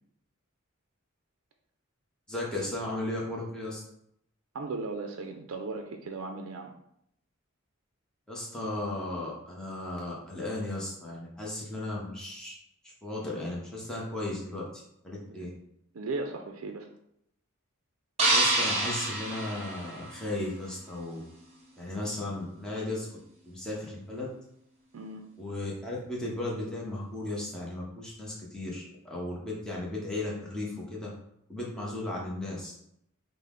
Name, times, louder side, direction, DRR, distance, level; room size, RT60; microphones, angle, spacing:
voice 1, 2.3-3.8 8.3-12.5 13.0-14.6 15.0-15.5 18.3-21.2 21.8-23.1 23.5-24.3 25.4-31.1 31.5-32.7, left 2 dB, 5° left, -5 dB, 0.8 m, -35 dB
voice 2, 4.5-6.8 15.3-15.5 15.9-16.9 24.9-25.3, right 3 dB, 65° right, 4 dB, 0.4 m, -37 dB
sound 1, 18.2-20.5, right 2 dB, 30° right, 0.9 m, -27 dB
5.3 x 2.0 x 3.6 m, 0.75 s
head